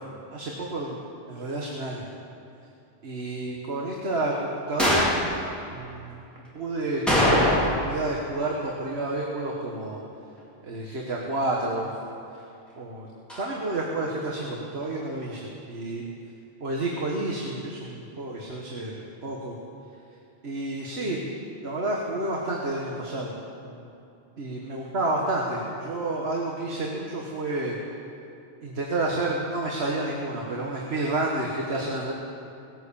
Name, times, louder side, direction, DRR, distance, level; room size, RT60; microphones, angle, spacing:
voice 1, 0.3-1.0 1.3-2.1 3.0-5.1 5.7-6.2 6.5-10.0 10.6-11.9 12.8-13.1 13.4-16.1 16.6-18.9 19.2-19.5 20.4-21.2 21.6-23.3 23.6-23.9 24.4-27.8 28.6-32.1, right 2 dB, 85° right, -2 dB, 1.7 m, -30 dB
sound 1, 4.8-5.2 7.1-7.9 8.2-8.3 13.3-13.4, left 1 dB, ahead, 4.1 m, -21 dB
19.0 x 9.3 x 7.0 m, 2.7 s
omnidirectional pair, 1.0 m